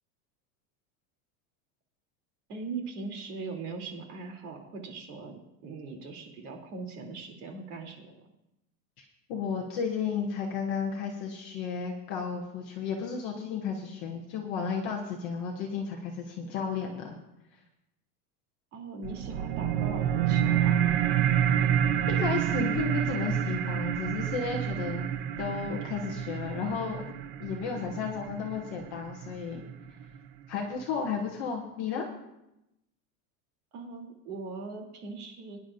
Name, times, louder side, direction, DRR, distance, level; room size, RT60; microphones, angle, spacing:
voice 1, 2.5-8.1 18.7-20.8 33.7-35.6, right 4 dB, 85° right, 2 dB, 3.0 m, -40 dB
voice 2, 9.3-17.2 22.1-25.1 25.4-27.0 27.4-29.6 30.5-32.1, left 6 dB, 20° left, 0 dB, 0.3 m, -33 dB
sound 1, 19.0-30.0, right 10 dB, 40° right, 0.5 m, -28 dB
22.0 x 10.0 x 2.5 m, 0.88 s
supercardioid pair, 175°, 44 cm